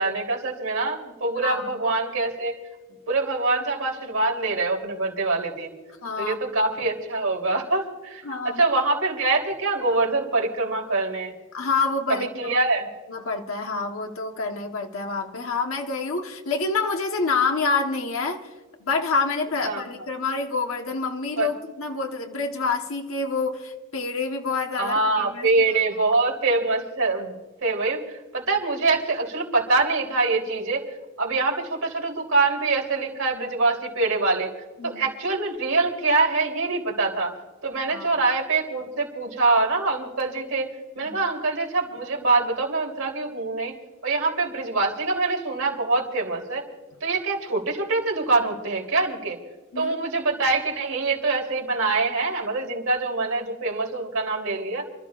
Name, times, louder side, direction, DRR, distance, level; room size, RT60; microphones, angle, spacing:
voice 1, 0.0-2.6 3.1-5.7 6.2-11.3 12.1-12.9 19.6-19.8 21.4-21.5 24.8-30.8 31.2-34.5 34.8-37.3 37.6-40.7 41.0-43.7 44.0-46.6 47.0-49.4 49.8-54.9, right 3 dB, 85° right, 0 dB, 3.5 m, -24 dB
voice 2, 1.4-1.7 6.0-6.4 8.2-8.6 11.5-12.6 13.1-18.5 18.8-25.8 34.8-35.0 37.9-38.1 41.0-41.1 49.7-49.9, left 4 dB, 85° left, 3 dB, 1.2 m, -27 dB
29.0 x 13.5 x 2.5 m, 1.3 s
head